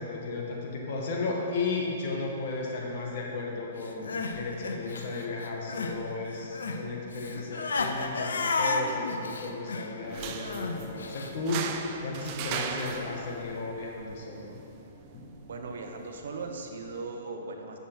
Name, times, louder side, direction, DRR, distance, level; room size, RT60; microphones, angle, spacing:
voice 1, 0.0-14.6 15.1-15.3, left 3 dB, 55° left, -1 dB, 1.5 m, -34 dB
Crying sobbing, 3.8-6.0 6.3-11.3, left 3 dB, 85° left, 0.7 m, -32 dB
sound 1, 10.0-17.0, right 6 dB, 40° right, 0.6 m, -40 dB
voice 2, 15.5-17.8, right 3 dB, 75° right, 4 dB, 0.8 m, -38 dB
8.8 x 6.7 x 4.6 m, 2.9 s
hypercardioid pair, 130°, 0 cm